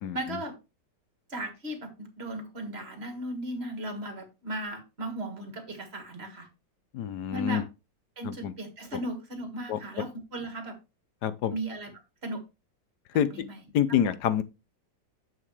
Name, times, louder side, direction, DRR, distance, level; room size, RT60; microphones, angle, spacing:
voice 1, 0.1-0.5 1.3-6.5 7.3-7.6 8.2-10.8 11.5-11.9 12.2-12.4 13.3-13.6 13.9-14.1, right 1 dB, 35° right, 1.9 m, -36 dB
voice 2, 6.9-7.6 8.2-8.5 9.7-9.8 11.2-11.5 13.1-13.3 13.7-14.4, left 10 dB, 65° left, 1.2 m, -26 dB
7.5 x 6.1 x 3.2 m
omnidirectional pair, 2.0 m